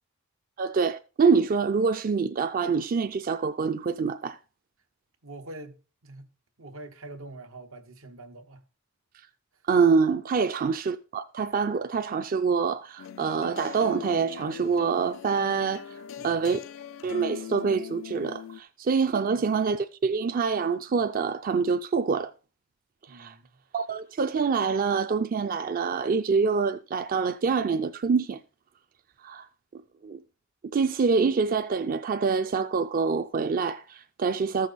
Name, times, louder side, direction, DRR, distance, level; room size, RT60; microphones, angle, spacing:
voice 1, 0.6-4.4 9.7-15.9 16.2-16.6 17.0-22.3 23.1-23.3 23.7-28.4 29.2-29.5 30.0-30.2 30.6-34.7, right 5 dB, 45° right, 0.4 m, -26 dB
voice 2, 5.2-6.3 6.6-8.6 16.2-16.6 19.3-19.5 23.1-23.6, right 2 dB, 90° right, 1.3 m, -45 dB
sound 1, 13.0-18.6, left 9 dB, 70° left, 0.4 m, -41 dB
13.5 x 6.3 x 4.1 m
head